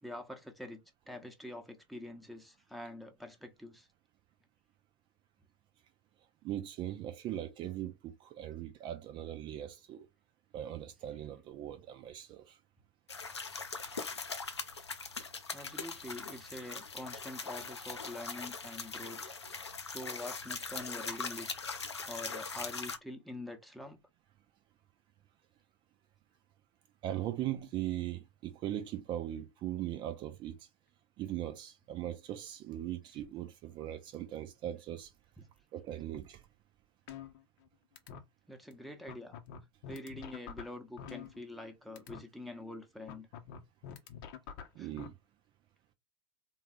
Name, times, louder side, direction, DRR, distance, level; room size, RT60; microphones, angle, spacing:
voice 1, 0.0-3.9 15.5-19.4 19.9-21.5 22.1-24.0 35.4-35.5 38.5-39.4 39.9-43.3 44.8-44.9, left 1 dB, ahead, 0.9 m, -45 dB
voice 2, 6.4-10.1 10.5-12.6 27.0-30.6 31.2-35.1 35.7-36.4 44.8-45.1, right 12 dB, 35° right, 0.6 m, -39 dB
sound 1, 13.1-23.0, left 4 dB, 80° left, 0.6 m, -41 dB
sound 2, 37.1-37.7 38.0-38.2 38.7-38.8 39.1-41.7 42.0-42.2 43.1-45.1, left 8 dB, 50° left, 0.8 m, -46 dB
3.7 x 2.4 x 3.7 m
figure-of-eight pair, 85°, 14 cm